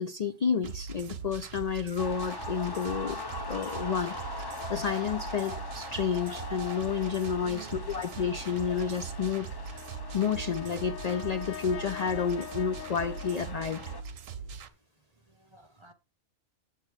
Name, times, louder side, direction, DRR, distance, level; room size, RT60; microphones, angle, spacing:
voice 1, 0.0-3.2 3.5-9.5 10.1-13.8, left 7 dB, 65° left, 0.4 m, -30 dB
sound 1, 0.6-14.7, right 5 dB, 85° right, 1.3 m, -41 dB
sound 2, 2.0-14.0, left 2 dB, 20° left, 0.8 m, -41 dB
voice 2, 7.4-8.2 14.1-14.7 15.2-15.9, right 5 dB, 30° right, 0.7 m, -52 dB
Brass instrument, 9.7-14.1, left 11 dB, 90° left, 1.1 m, -43 dB
8.3 x 7.0 x 4.7 m
omnidirectional pair, 1.3 m